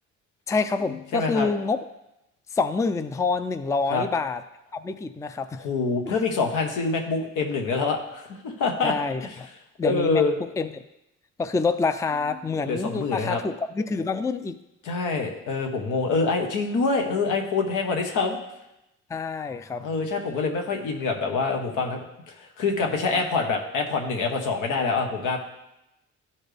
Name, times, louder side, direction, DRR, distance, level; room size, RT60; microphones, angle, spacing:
voice 1, 0.5-1.8 2.5-4.4 4.7-5.6 6.1-6.2 8.8-9.2 9.8-10.2 10.6-10.7 11.4-14.6 19.1-20.2, left 4 dB, 10° left, 10 dB, 0.4 m, -27 dB
voice 2, 1.1-1.5 3.9-4.1 5.6-8.9 9.2-9.4 9.8-10.4 12.6-13.4 14.8-18.4 19.8-25.4, left 4 dB, 85° left, 3 dB, 1.2 m, -26 dB
12.5 x 4.3 x 3.4 m, 0.89 s
cardioid pair, 90°, 30 cm